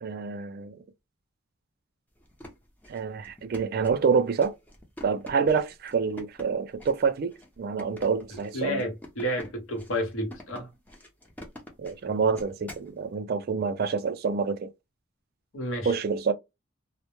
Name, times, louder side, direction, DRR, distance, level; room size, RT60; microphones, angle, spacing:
voice 1, 0.0-0.7 2.9-4.5 5.0-8.8 11.8-14.7 15.9-16.3, right 5 dB, 50° right, 0.3 m, -27 dB
sound 1, 2.2-12.9, left 1 dB, 10° left, 0.5 m, -47 dB
voice 2, 8.5-10.7 15.5-15.9, equal, 75° left, 0.8 m, -31 dB
2.1 x 2.0 x 2.9 m
head